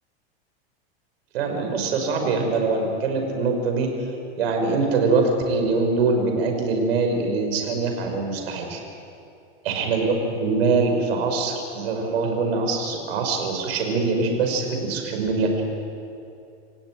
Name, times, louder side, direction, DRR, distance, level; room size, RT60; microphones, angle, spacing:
voice 1, 1.3-3.9 4.4-8.8 9.6-15.6, right 3 dB, 75° right, 4 dB, 5.6 m, -23 dB
28.0 x 16.0 x 9.6 m, 2.6 s
supercardioid pair, 135°, 31 cm